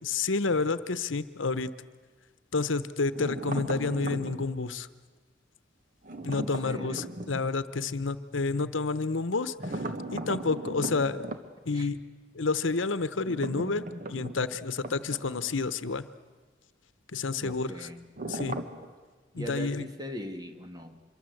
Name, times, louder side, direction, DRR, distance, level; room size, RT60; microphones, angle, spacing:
voice 1, 0.1-1.7 2.5-4.9 6.2-9.8 10.1-11.3 11.6-12.0 12.3-13.8 14.1-16.1 17.1-17.9 18.3-18.6 19.3-19.9, left 4 dB, 85° left, 14 dB, 0.9 m, -29 dB
sound 1, 3.1-4.5 6.0-7.5 9.6-11.4 13.2-15.6 15.9-16.0 18.2-18.9, right 1 dB, 45° right, 1.5 m, -37 dB
voice 2, 6.3-7.2 11.7-11.9 17.4-18.1 19.3-21.0, equal, 20° right, 6 dB, 1.7 m, -40 dB
25.5 x 23.5 x 7.9 m, 1.4 s
head